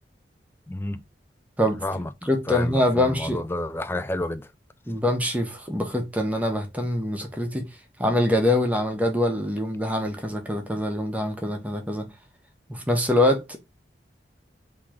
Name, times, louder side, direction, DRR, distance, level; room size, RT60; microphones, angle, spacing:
voice 1, 0.7-1.0 1.8-2.1 2.5-4.5, left 1 dB, 15° left, 0.3 m, -30 dB
voice 2, 2.2-3.4 4.9-7.7 8.0-12.1 12.7-13.6, left 1 dB, 10° right, 0.8 m, -24 dB
3.8 x 2.8 x 4.8 m
head